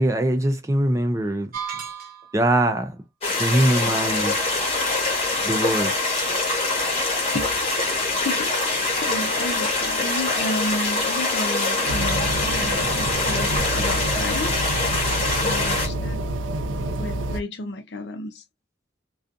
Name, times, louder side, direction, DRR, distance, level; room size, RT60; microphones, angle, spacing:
voice 1, 0.0-1.5 2.3-3.0 3.4-4.3 5.4-5.9, right 1 dB, 15° right, 0.4 m, -22 dB
sound 1, 1.5-2.5, right 7 dB, 50° right, 0.8 m, -34 dB
sound 2, 3.2-15.9, left 2 dB, 30° left, 0.9 m, -24 dB
voice 2, 7.9-14.6 15.4-16.2 17.0-18.4, left 2 dB, 65° left, 0.5 m, -32 dB
sound 3, 11.9-17.4, right 1 dB, 85° right, 0.4 m, -28 dB
2.4 x 2.4 x 2.5 m
head